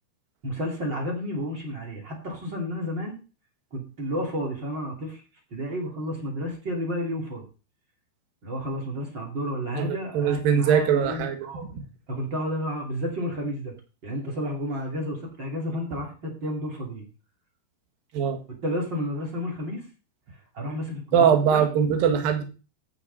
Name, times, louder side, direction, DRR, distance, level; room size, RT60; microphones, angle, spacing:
voice 1, 0.4-3.2 3.7-5.2 5.5-7.4 8.4-11.7 12.1-13.7 14.0-17.0 18.5-19.9 20.5-21.6, equal, 30° right, 0 dB, 2.6 m, -31 dB
voice 2, 9.8-11.4 11.7-11.8 18.1-18.4 21.1-22.4, right 8 dB, 60° right, 5 dB, 3.1 m, -22 dB
15.0 x 6.7 x 4.1 m, 0.33 s
omnidirectional pair, 5.1 m